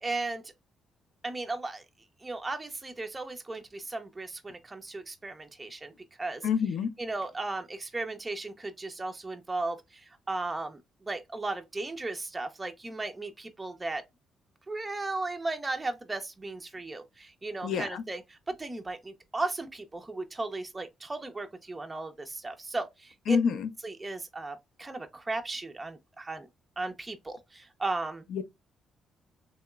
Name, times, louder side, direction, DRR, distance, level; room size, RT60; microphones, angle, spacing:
voice 1, 0.0-0.5 1.2-1.8 2.2-5.9 6.2-6.5 7.0-10.8 11.1-14.0 14.7-23.4 23.8-26.5 26.8-28.2, right 2 dB, 20° right, 0.4 m, -36 dB
voice 2, 6.4-6.9 17.6-18.0 23.3-23.7 28.3-28.4, left 6 dB, 75° left, 0.4 m, -27 dB
3.0 x 2.8 x 2.2 m
cardioid pair, 90°, 0 cm